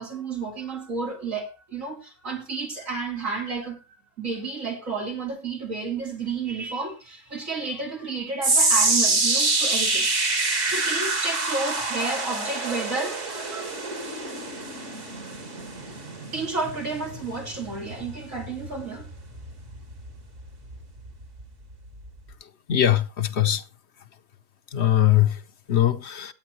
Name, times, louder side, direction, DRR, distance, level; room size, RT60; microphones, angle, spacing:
voice 1, 0.0-3.8 4.2-10.1 10.7-13.7 16.3-19.1, right 4 dB, 90° right, 3.5 m, -31 dB
sound 1, 8.4-20.7 21.1-21.4 22.1-22.2, right 3 dB, 70° right, 2.9 m, -26 dB
voice 2, 22.4-23.6 24.7-26.3, left 12 dB, 60° left, 1.0 m, -22 dB
16.5 x 9.2 x 3.0 m
omnidirectional pair, 1.3 m